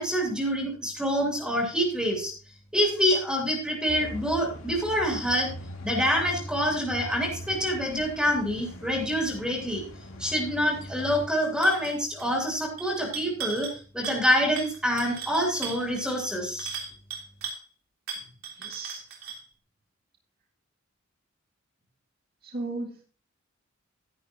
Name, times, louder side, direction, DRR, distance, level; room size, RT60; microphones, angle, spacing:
voice 1, 0.0-2.3 2.7-5.5 5.8-9.8 10.2-13.7 13.9-16.7, equal, 5° right, -1 dB, 2.8 m, -26 dB
sound 1, 3.9-11.3, equal, 90° left, 2.2 m, -41 dB
sound 2, 11.6-11.9 12.2-12.5 12.8-13.8 14.0-14.3 14.6-17.6 18.1-19.4, right 6 dB, 85° right, 3.5 m, -37 dB
voice 2, 18.6-19.0 22.4-23.0, right 3 dB, 50° right, 0 dB, 2.0 m, -35 dB
11.5 x 11.5 x 2.9 m, 0.38 s
head